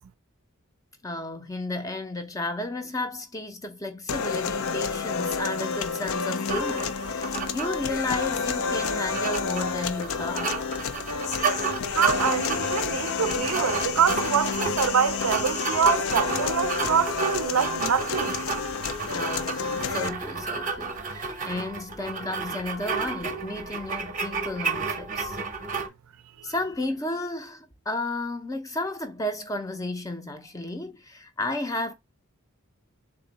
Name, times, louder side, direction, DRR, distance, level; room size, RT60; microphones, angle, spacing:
voice 1, 1.0-10.6 19.1-25.4 26.4-31.9, left 2 dB, 15° left, 0.5 m, -33 dB
sound 1, 4.1-20.1, left 5 dB, 70° left, 0.4 m, -30 dB
sound 2, 6.5-25.9, right 4 dB, 35° right, 0.6 m, -32 dB
voice 2, 11.9-18.4, right 7 dB, 75° right, 0.4 m, -25 dB
3.8 x 2.6 x 3.9 m
head